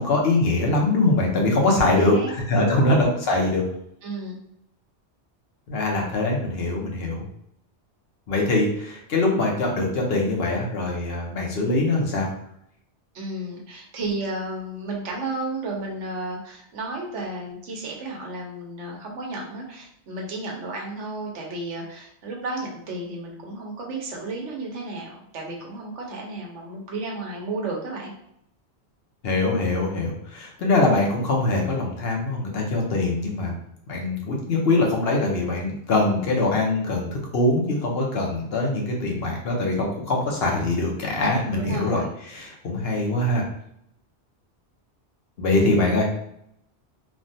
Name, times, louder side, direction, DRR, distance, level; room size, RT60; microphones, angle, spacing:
voice 1, 0.0-3.6 5.7-7.3 8.3-12.3 29.2-33.5 33.9-42.0 42.3-43.4 45.4-46.1, left 2 dB, 65° left, 0 dB, 0.9 m, -23 dB
voice 2, 1.7-2.9 4.0-4.4 13.1-28.1 41.6-42.1, right 2 dB, 85° right, -1 dB, 1.1 m, -33 dB
3.2 x 2.2 x 2.6 m, 0.75 s
omnidirectional pair, 1.2 m